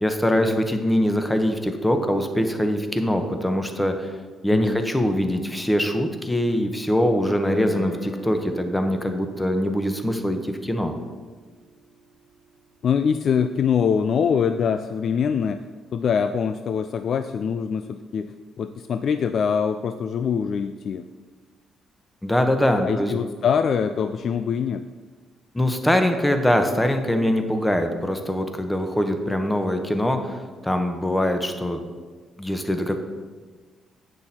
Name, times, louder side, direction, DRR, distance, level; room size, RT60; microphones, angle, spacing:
voice 1, 0.0-4.1 4.4-10.9 22.2-23.1 25.5-31.8 32.4-33.0, left 1 dB, 10° left, 6 dB, 1.0 m, -23 dB
Guitar, 7.4-13.5, equal, 75° left, 2.0 m, -43 dB
voice 2, 12.8-15.6 15.9-21.1 22.8-24.8, left 7 dB, 60° left, 10 dB, 0.3 m, -24 dB
8.8 x 6.3 x 4.3 m, 1.4 s
cardioid pair, 90°, 0 cm